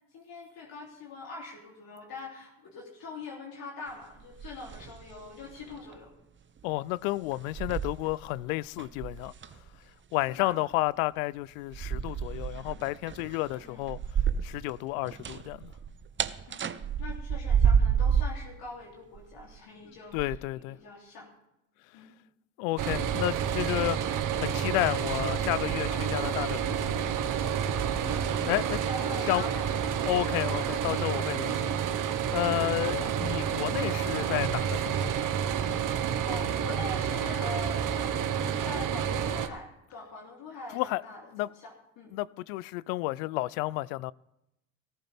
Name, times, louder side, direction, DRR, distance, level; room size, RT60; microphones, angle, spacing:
voice 1, 0.1-6.1 8.8-8.9 10.3-10.6 13.5-13.8 16.5-21.3 21.9-22.1 28.0-30.9 36.2-42.2, left 3 dB, 60° left, 3.2 m, -43 dB
sound 1, 4.2-5.2 5.5-5.8 6.6-6.7 7.3-8.4 8.8-9.7 11.7-14.7 15.0-18.4 19.2-19.6 20.2-20.4, right 7 dB, 30° right, 0.8 m, -29 dB
voice 2, 6.6-9.3 10.1-14.0 14.4-15.7 20.1-20.8 22.6-24.0 24.4-27.0 28.5-28.8 29.3-29.4 30.1-31.8 32.3-35.3 40.7-41.0 41.3-41.5 42.1-44.1, left 19 dB, 85° left, 0.5 m, -31 dB
sound 2, 22.8-39.5, right 8 dB, 50° right, 1.3 m, -29 dB
18.0 x 14.5 x 3.5 m
supercardioid pair, 75°, 40 cm